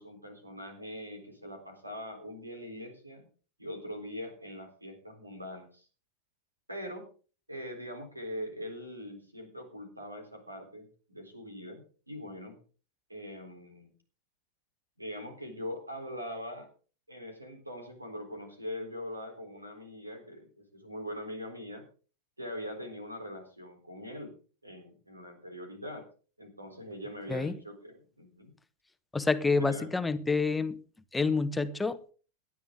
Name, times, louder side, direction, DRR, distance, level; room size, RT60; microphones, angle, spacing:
voice 1, 0.0-3.3 3.6-5.9 6.7-7.0 7.5-12.6 13.1-13.9 15.0-16.7 17.1-21.8 22.4-24.3 24.6-26.1 26.4-28.5 29.5-29.9, equal, 85° right, 3.9 m, -42 dB
voice 2, 29.1-30.8 31.1-32.1, left 4 dB, 10° left, 1.1 m, -28 dB
17.5 x 11.0 x 3.8 m
figure-of-eight pair, 90°, 0 cm